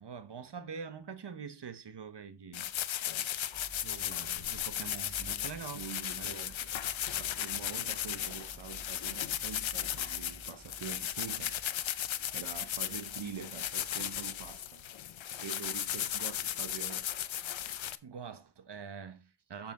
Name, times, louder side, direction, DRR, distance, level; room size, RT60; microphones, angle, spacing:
voice 1, 0.0-2.7 3.8-5.9 6.2-6.4 18.0-19.7, right 6 dB, 65° right, 1.1 m, -45 dB
sound 1, 2.5-17.9, left 11 dB, 85° left, 0.7 m, -36 dB
sound 2, 3.5-14.6, right 1 dB, 10° right, 2.1 m, -54 dB
voice 2, 5.7-6.6 7.1-11.6 12.3-14.8 15.3-17.1, right 7 dB, 85° right, 0.9 m, -45 dB
7.3 x 7.2 x 3.7 m
cardioid pair, 45°, 45 cm